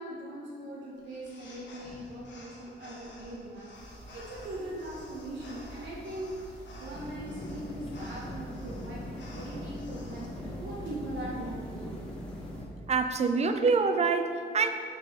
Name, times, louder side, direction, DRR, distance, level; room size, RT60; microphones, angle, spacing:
voice 1, 0.0-12.0, right 1 dB, 75° right, -6 dB, 1.0 m, -41 dB
sound 1, 1.0-10.3, left 1 dB, 75° left, 1.1 m, -51 dB
sound 2, 3.7-12.6, right 2 dB, 5° left, 1.2 m, -47 dB
sound 3, 6.9-12.7, left 2 dB, 30° left, 0.6 m, -42 dB
voice 2, 12.9-14.7, right 4 dB, 35° right, 8 dB, 0.4 m, -25 dB
5.4 x 5.1 x 4.2 m, 2.6 s
wide cardioid pair, 120°, 19 cm